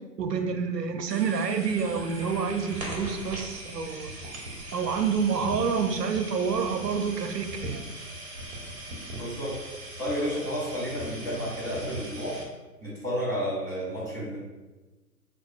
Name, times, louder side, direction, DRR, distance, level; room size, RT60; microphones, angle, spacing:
voice 1, 0.2-4.1 4.7-7.8, right 6 dB, 80° right, 6 dB, 0.6 m, -28 dB
sound 1, 1.1-12.4, right 1 dB, 40° right, 1.0 m, -40 dB
voice 2, 9.1-12.4 12.8-14.4, equal, 5° left, -14 dB, 1.4 m, -31 dB
5.3 x 2.4 x 2.3 m, 1.2 s
figure-of-eight pair, 135°, 49 cm